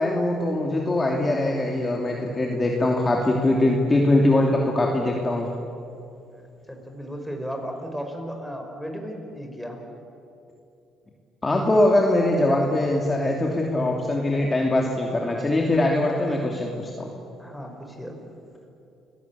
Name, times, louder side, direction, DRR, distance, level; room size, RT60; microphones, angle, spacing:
voice 1, 0.0-5.5 11.4-17.1, left 1 dB, 20° left, 0 dB, 2.8 m, -22 dB
voice 2, 6.7-9.8 17.4-18.3, equal, ahead, 3 dB, 5.1 m, -35 dB
29.5 x 18.0 x 8.6 m, 2.7 s
cardioid pair, 95°, 0 cm